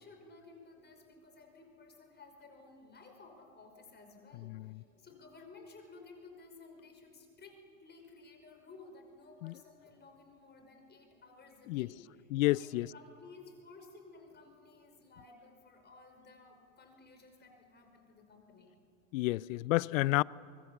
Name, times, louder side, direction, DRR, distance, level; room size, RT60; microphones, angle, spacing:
voice 1, 0.0-18.7, left 3 dB, 25° left, 5.4 m, -56 dB
voice 2, 12.3-12.9 19.1-20.2, left 19 dB, 70° left, 0.6 m, -30 dB
25.5 x 23.0 x 7.3 m
hypercardioid pair, 105°, 41 cm